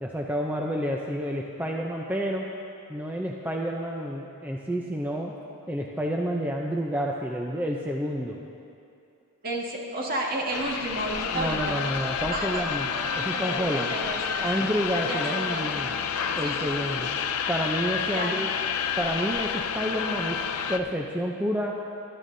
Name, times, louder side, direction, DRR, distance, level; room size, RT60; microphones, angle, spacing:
voice 1, 0.0-2.5 2.9-5.3 5.7-8.4 11.3-12.9 13.2-13.9 14.4-15.9 16.3-17.1 17.5-18.5 19.0-20.4 20.7-21.7, equal, 10° right, -1 dB, 0.5 m, -29 dB
voice 2, 9.4-11.8 12.3-14.6 15.0-16.0 16.4-16.7 17.0-17.1 18.1-18.4, right 1 dB, 45° right, -2 dB, 1.7 m, -32 dB
sound 1, 10.5-20.8, left 7 dB, 75° left, 0.6 m, -30 dB
21.0 x 12.0 x 2.7 m, 2.6 s
head